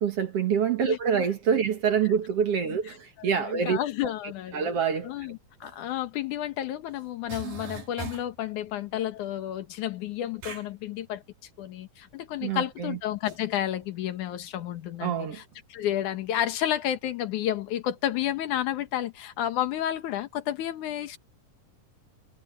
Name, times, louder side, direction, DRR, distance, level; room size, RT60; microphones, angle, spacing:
voice 1, 0.0-3.8 4.5-5.1 12.4-13.0 15.0-15.4, right 7 dB, 55° right, 2.1 m, -26 dB
voice 2, 3.2-4.7 5.0-11.2 11.6-15.4 15.7-21.2, left 12 dB, 70° left, 2.8 m, -31 dB
sound 1, 5.6-5.7 6.9-7.0 7.3-8.4 10.4-10.7 13.2-13.4, right 5 dB, 75° right, 4.9 m, -39 dB
omnidirectional pair, 3.9 m